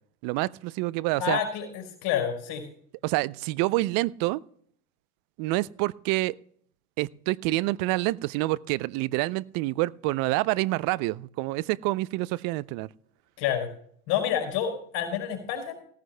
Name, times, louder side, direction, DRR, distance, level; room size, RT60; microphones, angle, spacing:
voice 1, 0.2-1.4 3.0-4.4 5.4-6.4 7.0-12.9, right 20 dB, 50° right, 22 dB, 0.5 m, -27 dB
voice 2, 1.2-2.6 13.4-13.7 14.1-15.7, left 9 dB, 60° left, 2 dB, 4.6 m, -28 dB
17.5 x 14.5 x 2.2 m, 0.62 s
supercardioid pair, 105°, 43 cm